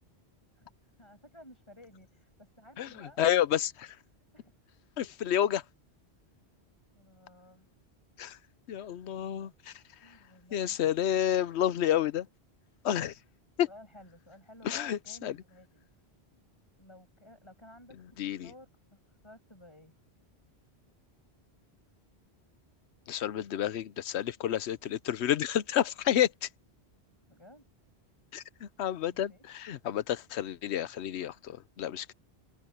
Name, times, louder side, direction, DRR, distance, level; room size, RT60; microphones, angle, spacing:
voice 1, 1.0-3.2 4.3-4.5 6.9-7.7 9.0-9.5 10.0-10.9 13.7-15.9 16.8-18.0 18.2-19.9 26.9-27.6 29.1-29.4, left 1 dB, 25° left, 6.5 m, -55 dB
voice 2, 3.2-3.9 5.0-5.6 8.2-8.4 8.7-9.7 10.5-12.3 12.8-13.1 13.6-13.7 14.6-15.3 18.2-18.5 23.1-26.5 28.3-32.1, left 11 dB, 85° left, 1.0 m, -30 dB
omnidirectional pair, 1.1 m